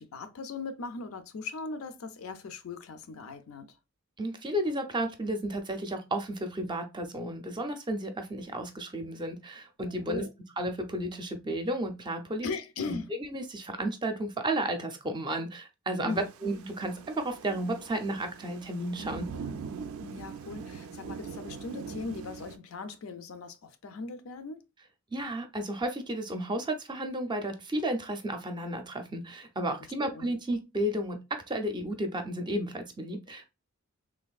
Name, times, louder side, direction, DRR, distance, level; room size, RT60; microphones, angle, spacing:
voice 1, 0.0-3.8 9.8-10.3 12.4-13.1 16.0-16.3 20.0-24.6 30.0-30.3, left 4 dB, 80° left, 0.5 m, -39 dB
voice 2, 4.2-10.2 10.6-12.5 12.9-13.0 13.3-19.3 25.1-33.5, right 1 dB, 20° right, 0.4 m, -33 dB
Thunder / Rain, 16.1-22.6, right 5 dB, 90° right, 0.4 m, -42 dB
3.3 x 2.5 x 2.3 m
head